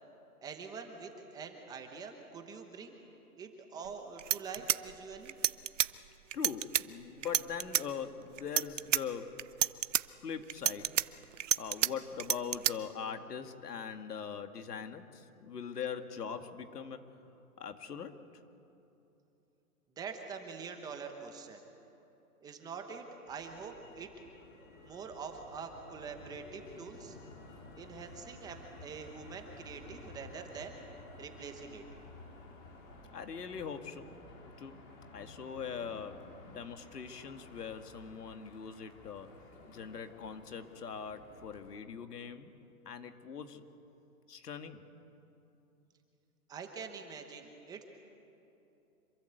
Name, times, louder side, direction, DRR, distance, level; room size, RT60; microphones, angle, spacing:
voice 1, 0.4-3.1 3.4-5.4 20.0-21.6 22.4-24.1 24.8-27.2 27.8-30.8 31.2-31.8 46.5-47.8, right 5 dB, 10° right, 4 dB, 1.0 m, -45 dB
sound 1, 3.8-3.9 4.2-5.9 6.3-6.8 7.2-7.8 8.4-9.0 9.4-10.0 10.5-11.9 12.2-12.7, right 11 dB, 55° right, 0.7 m, -29 dB
voice 2, 6.3-9.4 10.2-11.0 11.6-17.0 17.6-18.2 33.1-34.1 34.6-34.8 35.1-39.3 39.7-42.5 42.9-43.6 44.3-44.9, left 6 dB, 80° left, 7 dB, 2.3 m, -42 dB
Motor vehicle (road), 23.3-41.8, left 2 dB, 30° left, 4.2 m, -54 dB
26.5 x 22.5 x 8.2 m, 2.9 s
hypercardioid pair, 160°, 46 cm